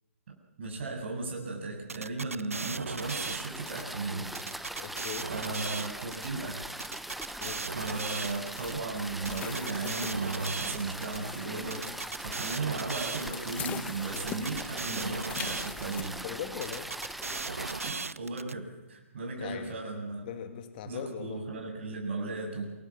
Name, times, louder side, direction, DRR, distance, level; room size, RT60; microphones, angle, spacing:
voice 1, 0.6-4.3 5.2-6.7 7.7-11.9 12.2-16.2 17.7-20.3 20.9-22.7, right 3 dB, 55° right, 2 dB, 7.6 m, -36 dB
sound 1, 1.9-3.8 4.3-6.3 6.8-8.7 9.3-11.2 11.7-13.6 14.2-16.1 16.6-18.5, right 4 dB, 85° right, 1.0 m, -37 dB
sound 2, 3.0-17.9, right 1 dB, ahead, 1.2 m, -41 dB
voice 2, 4.8-5.3 7.4-7.7 16.2-16.9 19.3-19.8 20.3-21.4, left 9 dB, 45° left, 7 dB, 2.8 m, -40 dB
sound 3, 7.6-16.0, left 9 dB, 20° left, 1.8 m, -44 dB
28.5 x 20.0 x 7.5 m, 1.1 s
figure-of-eight pair, 130°, 7 cm